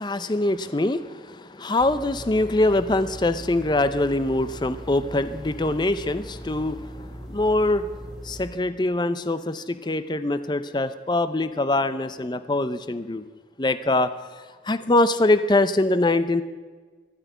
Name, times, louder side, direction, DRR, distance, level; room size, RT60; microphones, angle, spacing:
voice 1, 0.0-7.9 8.2-13.2 13.6-14.1 14.6-16.4, left 2 dB, 25° left, 13 dB, 0.5 m, -23 dB
sound 1, 1.8-8.5, equal, ahead, 3.6 m, -40 dB
12.5 x 12.0 x 9.1 m, 1.4 s
head